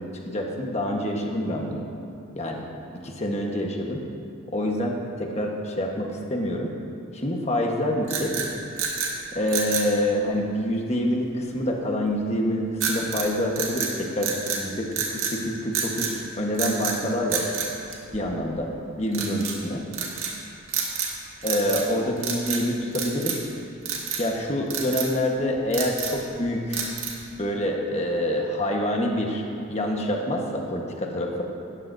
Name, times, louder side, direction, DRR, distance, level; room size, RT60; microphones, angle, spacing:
voice 1, 0.0-1.8 2.3-2.6 3.0-4.0 4.5-6.7 7.1-8.4 9.3-17.5 18.1-18.7 19.0-19.8 21.4-23.4 24.2-26.9 27.4-31.4, left 1 dB, 30° left, 0 dB, 1.3 m, -26 dB
sound 1, 8.0-9.1 9.5-9.9 12.8-13.3 13.6-14.6 14.9-15.4 15.7-16.1 16.5-17.0 17.3-18.5 19.1-19.6 19.9-20.3 20.7-21.2 21.4-21.9 22.2-22.6 22.9-23.5 23.9-24.3 24.7-25.1 25.5-26.2 26.7-27.3, right 6 dB, 70° right, 1.9 m, -29 dB
18.0 x 13.5 x 2.7 m, 2.6 s
head